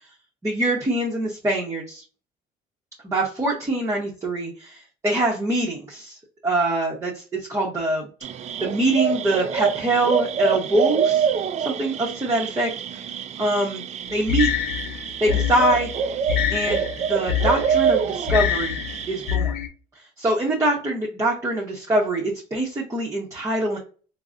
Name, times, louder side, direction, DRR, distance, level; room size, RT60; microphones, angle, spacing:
voice 1, 0.4-2.0 3.0-4.8 5.0-6.2 6.4-8.1 8.6-11.3 11.6-13.0 13.4-13.8 14.1-14.5 15.2-15.9 16.5-18.8 19.1-19.5 20.2-23.8, right 1 dB, 15° right, -2 dB, 0.8 m, -24 dB
sound 1, 8.2-19.4, right 7 dB, 40° right, 0.4 m, -26 dB
sound 2, 14.3-19.7, left 10 dB, 70° left, 0.5 m, -26 dB
3.8 x 2.0 x 2.4 m, 0.37 s
cardioid pair, 110°, 17 cm